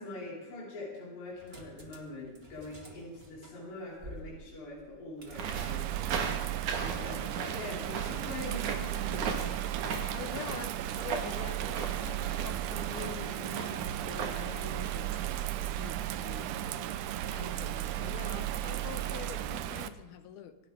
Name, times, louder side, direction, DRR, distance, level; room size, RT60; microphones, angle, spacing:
voice 1, 0.0-9.4, left 2 dB, 60° left, -6 dB, 6.4 m, -43 dB
sound 1, 1.3-19.1, right 1 dB, 25° right, 1.2 m, -56 dB
Bird vocalization bird call bird song / Rain, 5.3-19.9, right 12 dB, 80° right, 1.8 m, -35 dB
sound 2, 5.4-14.4, right 5 dB, 60° right, 2.8 m, -37 dB
voice 2, 10.1-15.1 15.6-16.5 17.2-20.6, left 9 dB, 80° left, 10 dB, 2.7 m, -45 dB
26.5 x 11.5 x 3.6 m, 1.2 s
omnidirectional pair, 4.4 m